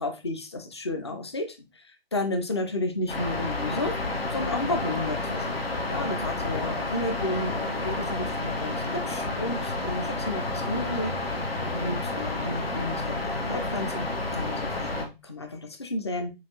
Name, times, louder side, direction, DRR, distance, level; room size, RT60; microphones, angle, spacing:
voice 1, 0.0-1.6 2.1-4.0 4.3-5.6 5.9-11.3 11.7-14.0 14.3-16.3, left 2 dB, 30° left, 8 dB, 0.4 m, -32 dB
sound 1, 3.1-15.1, left 2 dB, 80° left, 0.9 m, -30 dB
5.6 x 2.3 x 2.6 m, 0.25 s
figure-of-eight pair, 135°, 30 cm